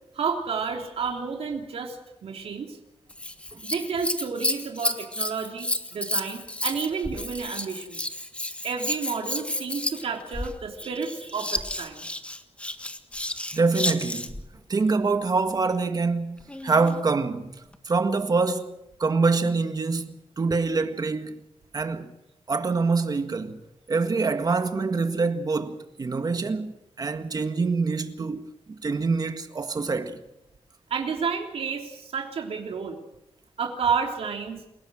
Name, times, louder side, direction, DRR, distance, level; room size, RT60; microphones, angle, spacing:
voice 1, 0.1-2.8 3.6-8.0 8.6-12.1 30.9-33.0 33.6-34.6, right 5 dB, 90° right, 3.3 m, -30 dB
Scissors, 3.1-14.5 16.4-17.0 17.7-17.8, left 1 dB, 10° left, 1.6 m, -31 dB
voice 2, 13.5-14.3 14.7-16.4 16.6-17.5 17.9-18.7 19.0-21.3 21.7-22.1 22.5-23.6 23.9-30.2, right 4 dB, 40° right, 1.8 m, -25 dB
28.5 x 18.0 x 6.4 m
wide cardioid pair, 145°, 10 cm